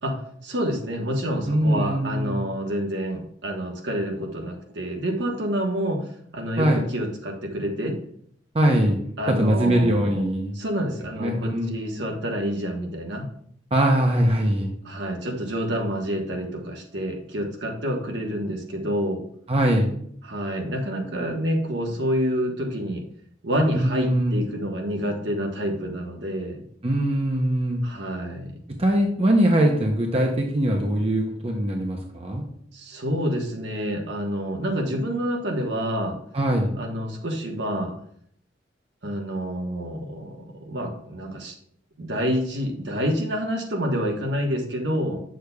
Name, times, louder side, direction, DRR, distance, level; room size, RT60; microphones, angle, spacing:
voice 1, 0.0-8.0 9.2-10.2 10.5-13.3 14.8-19.2 20.2-23.0 23.4-26.6 27.8-28.6 32.7-36.2 36.8-37.9 39.0-41.6 42.0-45.2, equal, 70° right, 2 dB, 1.2 m, -28 dB
voice 2, 1.5-2.4 6.6-6.8 8.5-9.0 9.3-10.5 11.2-11.7 13.7-14.7 19.5-19.9 23.7-24.3 26.8-27.8 28.7-32.4 36.3-36.7, right 1 dB, 35° right, 1 dB, 0.7 m, -22 dB
8.1 x 6.5 x 2.3 m, 0.66 s
head